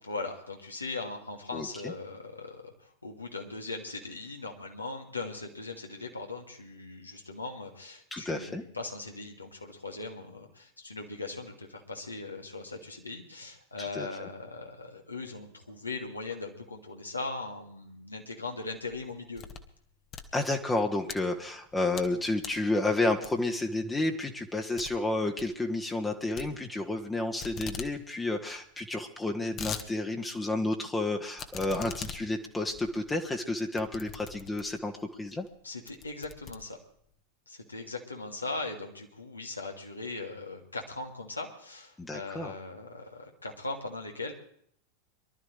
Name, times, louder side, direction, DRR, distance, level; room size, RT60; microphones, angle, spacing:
voice 1, 0.1-19.4 35.6-36.8 37.5-44.3, left 3 dB, 80° left, 2 dB, 2.5 m, -39 dB
voice 2, 1.5-1.9 8.1-8.6 13.8-14.1 20.3-34.9 35.2-35.5 42.0-42.5, left 2 dB, 10° left, 2 dB, 1.4 m, -31 dB
sound 1, 18.8-19.7 20.0-21.2 21.7-22.1 22.4-22.7 23.2-23.6 24.0-24.1 24.4-24.5 24.8-24.9 25.2-25.5 26.4-27.1 27.4-27.9 28.3-28.4 28.5-28.6 29.2-29.9 30.3-30.4 31.4-34.9 35.4-35.6 35.9-37.1, left 7 dB, 30° left, 1.4 m, -42 dB
23.5 x 12.5 x 3.4 m, 0.64 s
figure-of-eight pair, 90°, 0 cm